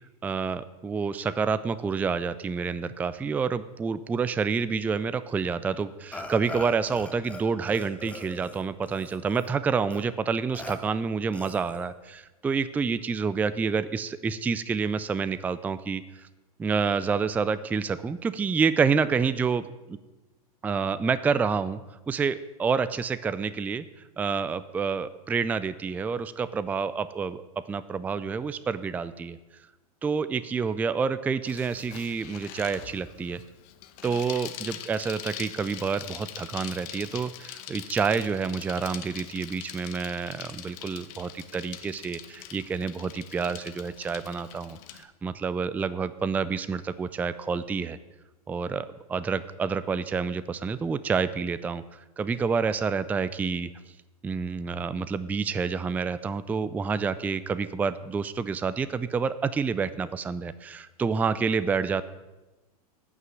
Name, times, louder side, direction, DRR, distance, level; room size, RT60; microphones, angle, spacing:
voice 1, 0.2-16.3 16.6-20.0 20.6-21.8 22.1-23.8 24.2-27.4 27.7-29.4 30.0-33.4 34.0-48.0 48.5-53.7 54.2-62.0, right 5 dB, 10° right, 14 dB, 0.3 m, -28 dB
Burping eructation, 6.1-7.4 7.7-9.5 9.9-10.0 10.5-10.8 11.3-11.9, left 1 dB, 5° left, 1.2 m, -41 dB
Bicycle, 31.5-45.0, left 12 dB, 50° left, 0.9 m, -43 dB
9.3 x 5.8 x 7.7 m, 1.1 s
hypercardioid pair, 115°, 19 cm